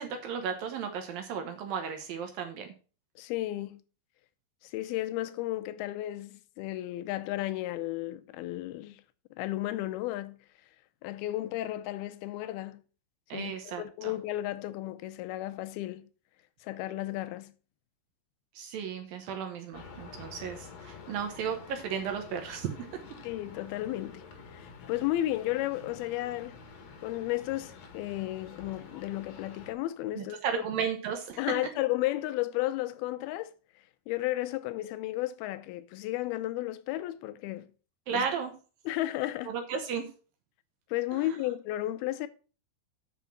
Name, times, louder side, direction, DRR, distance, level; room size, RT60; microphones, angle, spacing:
voice 1, 0.0-2.7 13.3-14.1 18.6-22.9 30.1-31.5 38.1-38.5 39.5-40.1 41.2-41.3, right 7 dB, 70° right, 2.6 m, -34 dB
voice 2, 3.2-3.8 4.6-9.0 9.4-10.4 11.0-12.8 13.3-16.1 16.6-17.5 23.2-24.2 24.5-26.6 27.0-30.4 31.4-33.5 34.1-37.7 38.1-38.3 38.9-39.6 40.9-42.3, left 15 dB, 80° left, 2.5 m, -33 dB
sound 1, 19.7-29.7, left 5 dB, 55° left, 2.1 m, -49 dB
9.0 x 5.8 x 5.9 m
omnidirectional pair, 4.7 m